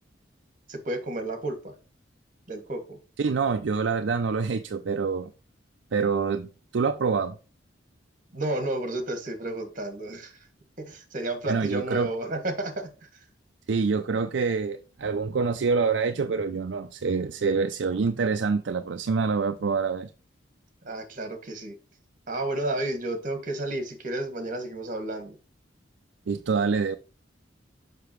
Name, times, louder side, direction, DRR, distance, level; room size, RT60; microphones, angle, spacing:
voice 1, 0.7-1.7 2.5-3.0 8.3-10.3 10.8-12.9 20.8-21.7 22.3-25.3, right 1 dB, 45° right, 1.7 m, -31 dB
voice 2, 3.2-5.3 5.9-7.3 11.5-12.1 13.7-20.1 26.3-27.0, right 5 dB, 65° right, 0.4 m, -26 dB
6.8 x 5.8 x 3.1 m
head